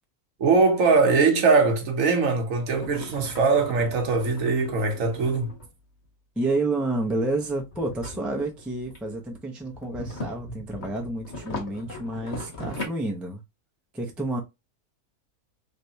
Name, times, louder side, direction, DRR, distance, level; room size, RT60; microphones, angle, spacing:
voice 1, 0.4-5.5, right 4 dB, 60° right, 1.2 m, -21 dB
sound 1, 2.7-5.7 6.9-9.2 9.6-12.9, left 2 dB, 35° left, 1.2 m, -39 dB
voice 2, 6.4-13.4 13.9-14.4, right 2 dB, ahead, 0.4 m, -29 dB
3.3 x 3.3 x 2.7 m
omnidirectional pair, 1.6 m